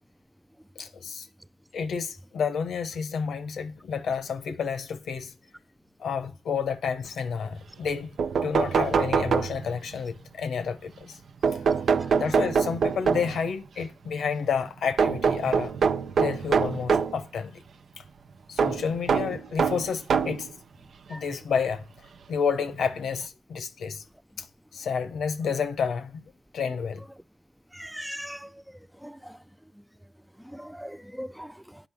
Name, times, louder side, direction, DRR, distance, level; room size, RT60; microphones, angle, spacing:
voice 1, 0.8-1.3 1.7-5.3 6.0-8.1 8.4-11.2 11.5-11.6 12.2-15.7 16.2-17.6 18.0-18.1 18.5-20.5 21.1-21.8 22.3-24.0 24.4-24.5 24.7-26.2 26.5-27.0, left 6 dB, 80° left, 0.7 m, -30 dB
sound 1, 7.9-8.0 8.2-9.9 11.4-13.5 15.0-17.2 18.6-20.5 21.3-21.4 22.7-22.8 23.2-23.3, right 6 dB, 75° right, 0.4 m, -24 dB
voice 2, 27.7-28.5 29.0-29.2 30.5-31.5, equal, 5° right, 0.3 m, -39 dB
9.2 x 5.0 x 3.4 m
supercardioid pair, 45°, 0 cm